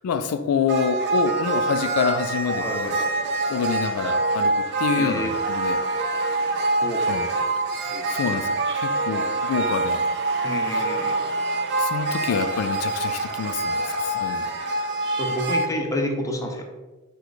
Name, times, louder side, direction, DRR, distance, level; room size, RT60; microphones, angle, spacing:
voice 1, 0.0-3.0 3.5-5.8 7.1-7.3 7.8-10.0 11.8-14.5, left 6 dB, 85° left, 10 dB, 0.3 m, -27 dB
sound 1, 0.7-15.7, right 2 dB, 50° right, 0.4 m, -25 dB
voice 2, 2.6-3.2 4.9-5.3 6.8-7.5 7.9-8.1 10.4-11.2 15.2-16.6, left 1 dB, 15° left, 2 dB, 0.5 m, -29 dB
4.7 x 2.3 x 3.9 m, 1.2 s
head